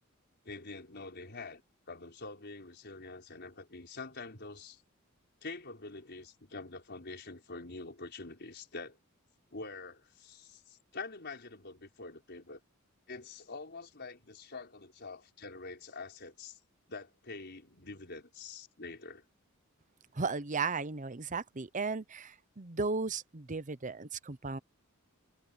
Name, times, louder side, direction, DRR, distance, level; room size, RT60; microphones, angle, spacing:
voice 1, 0.4-1.6 1.9-4.8 5.4-9.0 9.5-12.6 13.1-16.6 16.9-19.2, left 3 dB, 55° left, 5.2 m, -46 dB
voice 2, 20.1-24.6, right 4 dB, 40° right, 0.9 m, -35 dB
head